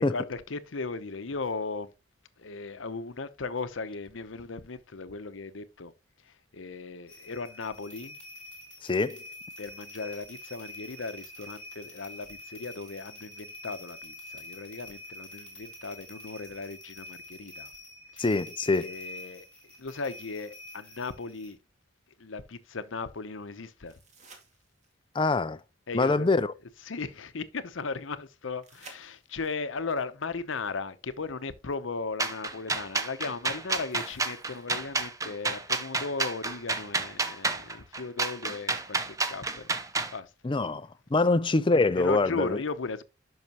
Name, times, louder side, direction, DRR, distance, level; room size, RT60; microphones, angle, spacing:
voice 1, 0.0-1.9 2.4-5.9 6.2-8.2 9.6-17.7 18.1-18.4 18.6-19.5 19.8-21.6 22.2-24.0 25.9-26.3 26.6-39.7 40.1-40.3 41.9-43.0, left 4 dB, 80° left, 0.8 m, -37 dB
sound 1, 7.1-21.5, left 1 dB, 5° left, 2.8 m, -46 dB
voice 2, 8.8-9.2 18.2-18.9 25.1-25.6 25.9-26.5 40.4-42.6, left 3 dB, 25° left, 0.4 m, -25 dB
sound 2, 23.9-25.1 28.6-29.6 31.5-31.6 33.9-34.9 37.9-38.0, right 3 dB, 35° right, 2.2 m, -54 dB
sound 3, 32.2-40.1, right 3 dB, 15° right, 0.8 m, -30 dB
11.0 x 5.7 x 2.9 m
head